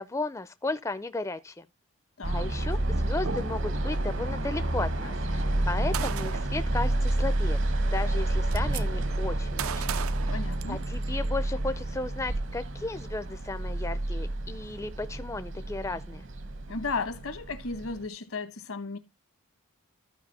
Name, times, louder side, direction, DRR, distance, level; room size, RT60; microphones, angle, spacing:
voice 1, 0.0-1.7 2.3-7.6 7.9-10.4 10.7-16.3, left 2 dB, 15° left, 0.4 m, -35 dB
voice 2, 2.2-2.5 10.3-10.8 16.7-19.0, left 4 dB, 75° left, 1.2 m, -34 dB
sound 1, 2.2-18.1, right 1 dB, 60° right, 1.0 m, -30 dB
Gunshot gunfire, 5.9-6.6 7.7-7.8 8.1-8.8 9.6-11.1, right 9 dB, 75° right, 0.5 m, -35 dB
14.0 x 5.0 x 4.1 m
head